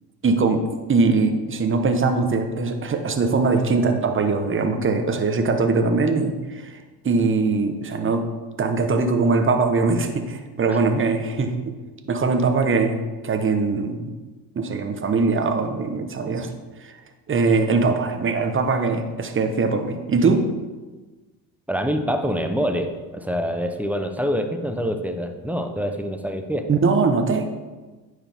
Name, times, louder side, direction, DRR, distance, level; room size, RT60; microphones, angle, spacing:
voice 1, 0.2-6.8 7.0-8.2 8.6-11.8 12.1-14.1 14.5-16.5 17.3-20.5 26.7-27.5, right 4 dB, 25° right, 6 dB, 1.0 m, -21 dB
voice 2, 21.7-26.7, equal, 5° right, 6 dB, 0.7 m, -26 dB
9.6 x 4.8 x 3.5 m, 1.3 s
supercardioid pair, 70°, 47 cm